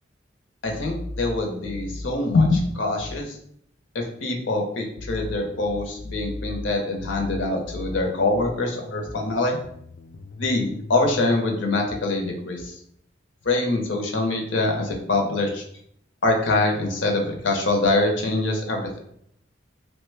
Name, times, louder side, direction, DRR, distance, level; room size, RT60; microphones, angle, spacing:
voice 1, 0.6-3.4 3.9-9.6 10.4-12.8 13.4-15.6 16.2-19.0, left 2 dB, 75° left, 2 dB, 0.7 m, -24 dB
sound 1, 0.6-3.2 5.0-8.6 9.6-11.3, left 1 dB, 50° left, 0.3 m, -36 dB
3.1 x 2.1 x 3.3 m, 0.69 s
head